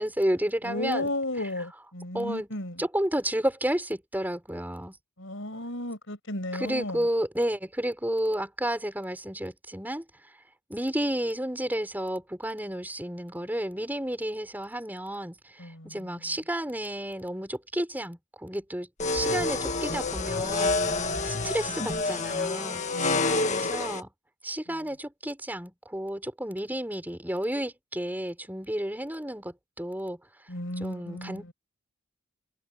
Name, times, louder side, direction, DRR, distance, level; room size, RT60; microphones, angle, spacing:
voice 1, 0.0-1.1 2.1-2.5 2.8-5.0 6.5-10.0 10.7-20.8 21.2-22.8 23.4-24.1 24.4-30.2 30.8-31.5, right 1 dB, 10° right, 6.6 m, -31 dB
voice 2, 0.6-2.8 5.2-7.0 15.6-16.2 21.0-21.2 22.9-23.5 30.5-31.5, left 1 dB, 65° left, 7.7 m, -34 dB
sound 1, 19.0-24.0, left 3 dB, 35° left, 1.6 m, -28 dB
head